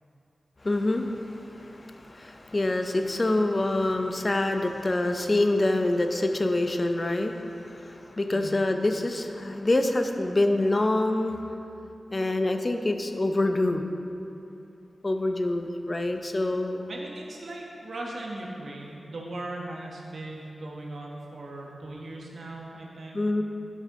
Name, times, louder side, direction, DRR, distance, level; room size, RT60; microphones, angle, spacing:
voice 1, 0.6-11.4 12.1-13.8 15.0-16.8 23.1-23.4, left 2 dB, 40° left, 6 dB, 0.6 m, -26 dB
voice 2, 8.3-8.6 16.9-23.2, right 2 dB, 75° right, -2 dB, 1.2 m, -38 dB
10.0 x 5.4 x 3.7 m, 2.8 s
cardioid pair, 50°, 0 cm